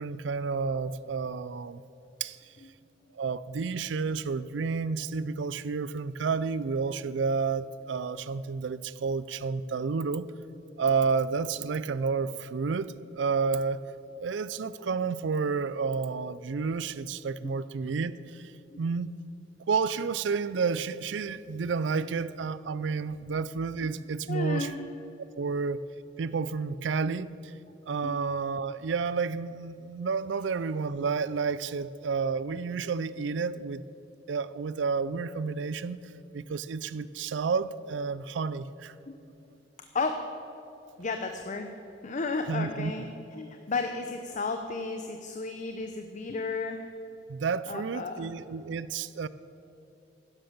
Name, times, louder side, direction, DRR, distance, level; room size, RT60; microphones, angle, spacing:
voice 1, 0.0-1.8 2.2-2.5 3.1-10.3 10.8-13.9 14.2-19.1 19.7-24.7 25.4-25.8 26.2-27.5 27.9-33.8 34.3-36.0 36.3-38.9 42.5-42.9 47.3-49.3, right 5 dB, 75° right, 16 dB, 0.4 m, -30 dB
voice 2, 24.3-24.8 28.0-28.2 39.9-40.2 41.0-41.7 42.0-46.8 47.7-48.3, left 3 dB, 40° left, 6 dB, 0.7 m, -33 dB
11.5 x 10.5 x 6.7 m, 2.9 s
head